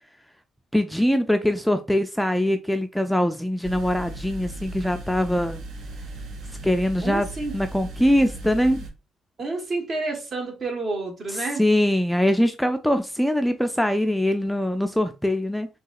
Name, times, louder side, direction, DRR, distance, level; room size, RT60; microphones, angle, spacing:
voice 1, 0.7-5.6 6.6-7.3 7.5-8.8 11.3-15.7, left 1 dB, ahead, 0.3 m, -22 dB
sound 1, 3.6-8.9, right 2 dB, 70° right, 0.7 m, -37 dB
voice 2, 7.0-7.6 9.4-11.6, right 3 dB, 45° right, 1.2 m, -29 dB
3.9 x 2.8 x 2.3 m
cardioid pair, 90°, 0 cm